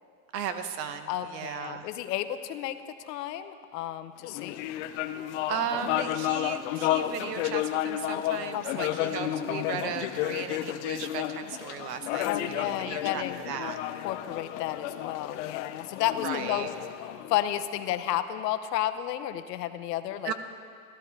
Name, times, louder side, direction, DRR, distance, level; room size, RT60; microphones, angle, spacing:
voice 1, 0.3-1.9 5.5-13.8 16.2-16.7 20.2-20.3, right 7 dB, 80° right, 9 dB, 1.1 m, -36 dB
voice 2, 1.1-4.6 8.5-9.0 12.2-13.4 14.0-16.7 17.3-20.3, left 12 dB, 80° left, 10 dB, 0.8 m, -32 dB
sound 1, 4.2-17.9, left 13 dB, 50° left, 0.5 m, -32 dB
13.5 x 12.5 x 4.0 m, 2.3 s
supercardioid pair, 145°, 48 cm